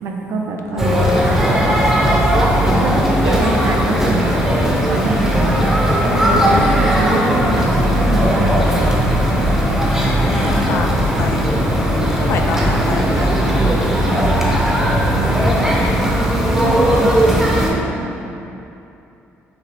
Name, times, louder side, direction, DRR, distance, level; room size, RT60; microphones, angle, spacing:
voice 1, 0.0-1.0 2.7-5.6 6.2-9.2 15.0-18.3, right 3 dB, 70° right, 1 dB, 0.5 m, -24 dB
voice 2, 0.8-1.1 2.6-3.0 5.4-5.8 10.4-11.5 11.9-13.3, left 4 dB, 60° left, 4 dB, 0.3 m, -27 dB
sound 1, 0.8-17.7, equal, 5° right, 0.6 m, -16 dB
5.1 x 3.0 x 3.3 m, 2.8 s
cardioid pair, 140°, 5 cm